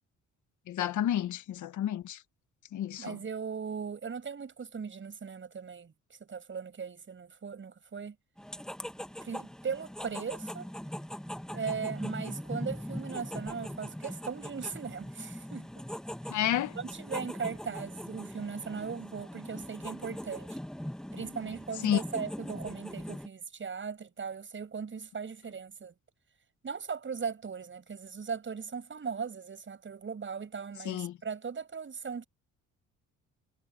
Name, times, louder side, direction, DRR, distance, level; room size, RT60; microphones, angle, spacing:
voice 1, 0.7-2.2 2.7-3.2 16.3-16.7 21.8-22.0 30.8-31.1, left 11 dB, 75° left, 1.6 m, -30 dB
voice 2, 3.0-8.2 9.2-10.7 11.5-15.7 16.3-16.4 16.8-20.6 21.1-26.0 26.6-32.3, right 6 dB, 40° right, 7.1 m, -38 dB
sound 1, 8.4-23.3, equal, ahead, 1.6 m, -41 dB
cardioid pair, 90°, 30 cm